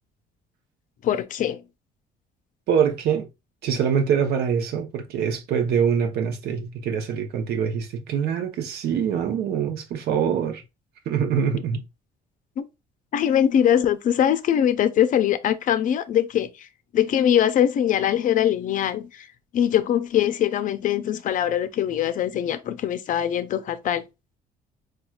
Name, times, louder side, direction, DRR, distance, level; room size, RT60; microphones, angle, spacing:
voice 1, 1.0-1.6 12.6-12.7 13.1-16.7 16.9-19.3 19.5-24.0, left 10 dB, 50° left, 0.5 m, -22 dB
voice 2, 2.7-3.3 3.6-10.6 11.1-11.8, right 7 dB, 70° right, 0.8 m, -24 dB
4.2 x 2.4 x 2.3 m
cardioid pair, 110°, 17 cm